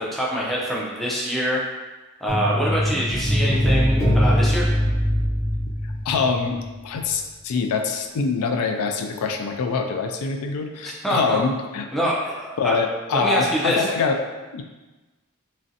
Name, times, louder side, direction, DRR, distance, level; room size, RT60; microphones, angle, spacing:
voice 1, 0.0-1.6 2.2-4.7 11.0-11.4 11.9-12.8 13.1-13.9, equal, ahead, -5 dB, 0.4 m, -25 dB
sound 1, 2.3-6.7 7.0-7.1, equal, 65° left, 1.5 m, -22 dB
voice 2, 6.1-6.6 6.8-12.1 12.6-14.2 14.5-14.6, left 4 dB, 85° left, 5 dB, 0.3 m, -24 dB
3.0 x 2.5 x 2.6 m, 1.2 s
head